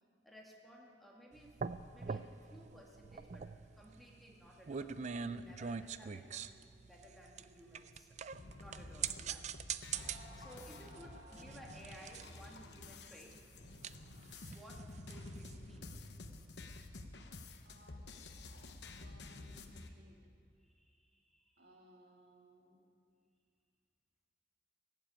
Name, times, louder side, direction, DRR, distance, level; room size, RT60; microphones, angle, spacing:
voice 1, 0.2-1.6 1.9-8.2 8.6-9.8 10.4-13.5 14.5-15.9 20.6-21.7, equal, ahead, -2 dB, 1.8 m, -58 dB
sound 1, 1.4-15.8, right 6 dB, 40° right, 0.4 m, -44 dB
sound 2, 8.3-19.9, left 2 dB, 80° left, 1.0 m, -51 dB
sound 3, 8.8-8.9 9.6-9.7 9.9-12.4, left 1 dB, 25° right, 3.7 m, -58 dB
voice 2, 17.6-18.5 18.9-20.2 21.6-22.8, equal, 60° right, -1 dB, 2.4 m, -63 dB
18.0 x 7.7 x 9.0 m, 2.2 s
head